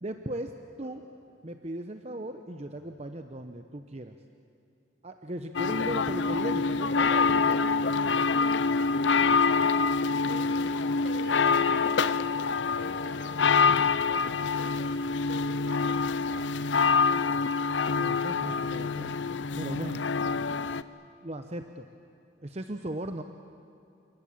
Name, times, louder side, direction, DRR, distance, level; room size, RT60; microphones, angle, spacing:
voice 1, 0.0-1.0 1.4-4.2 5.0-7.8 17.9-19.2 19.6-20.8 21.2-21.9 22.4-23.2, right 1 dB, 35° right, 7 dB, 0.9 m, -37 dB
sound 1, 5.5-20.8, left 5 dB, 80° left, 0.6 m, -26 dB
voice 2, 9.4-10.8 11.0-12.4 12.8-14.9 15.2-16.1 18.5-19.0, right 1 dB, 70° right, 3 dB, 5.1 m, -45 dB
29.5 x 18.5 x 8.7 m, 2.6 s
head